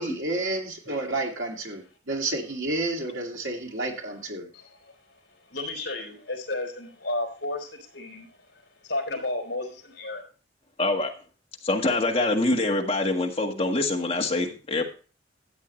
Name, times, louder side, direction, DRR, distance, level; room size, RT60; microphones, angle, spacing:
voice 1, 0.0-4.5, right 2 dB, 85° right, 2.4 m, -30 dB
voice 2, 4.5-5.2 5.5-10.2, left 2 dB, 65° left, 3.7 m, -33 dB
voice 3, 10.8-11.1 11.6-14.9, left 2 dB, 30° left, 1.6 m, -25 dB
13.0 x 8.5 x 3.2 m
head